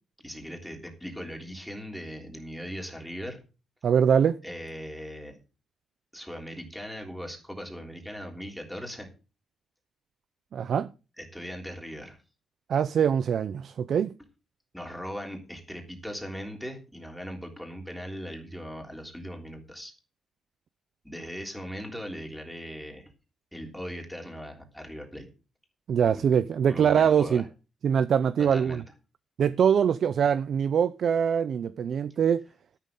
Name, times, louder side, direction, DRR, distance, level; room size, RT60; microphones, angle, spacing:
voice 1, 0.2-3.4 4.4-5.4 6.1-9.1 11.2-12.2 14.7-19.9 21.0-23.1 23.5-25.3 26.1-26.3 26.7-27.4 28.4-28.8, equal, ahead, 3.4 m, -39 dB
voice 2, 3.8-4.4 10.5-10.9 12.7-14.1 25.9-27.4 27.8-28.8 29.4-32.4, right 8 dB, 50° right, 0.5 m, -23 dB
13.0 x 11.5 x 3.8 m
cardioid pair, 170°, 0 cm